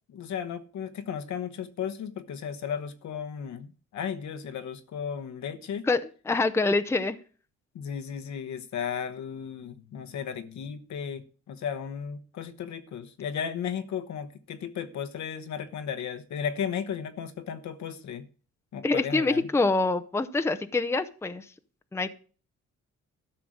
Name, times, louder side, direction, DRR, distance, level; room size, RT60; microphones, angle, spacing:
voice 1, 0.1-5.9 7.7-18.3 18.7-19.5, left 7 dB, 65° left, 1.1 m, -35 dB
voice 2, 6.3-7.2 18.8-21.4 21.9-22.1, left 3 dB, 10° left, 0.7 m, -25 dB
13.0 x 5.8 x 6.4 m
cardioid pair, 90°, 30 cm